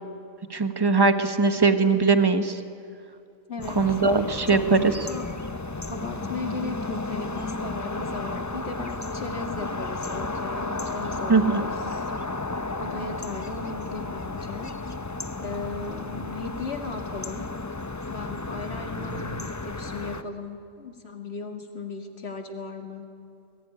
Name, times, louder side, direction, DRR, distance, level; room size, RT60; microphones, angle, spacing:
voice 1, 0.5-2.6 3.8-4.8 11.3-11.6, right 4 dB, 20° right, 8 dB, 1.1 m, -20 dB
voice 2, 3.5-3.8 4.5-5.3 5.9-12.1 12.8-14.7 15.4-17.5 18.1-23.0, left 3 dB, 50° left, 4 dB, 2.4 m, -37 dB
sound 1, 3.6-20.2, left 3 dB, 20° left, 0.5 m, -33 dB
22.5 x 20.0 x 10.0 m, 2.4 s
omnidirectional pair, 1.4 m